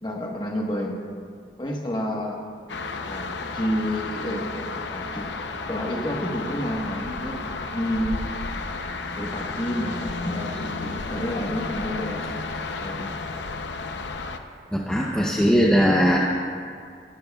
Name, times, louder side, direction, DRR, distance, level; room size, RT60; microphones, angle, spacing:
voice 1, 0.0-1.0 1.6-2.4 3.1-5.4 5.7-8.2 9.1-12.4 12.8-13.1, equal, 25° left, 0 dB, 1.3 m, -30 dB
sound 1, 2.7-14.4, left 3 dB, 80° left, 0.7 m, -32 dB
voice 2, 14.7-16.2, equal, 5° left, -3 dB, 0.7 m, -19 dB
18.0 x 12.5 x 2.3 m, 2.2 s
head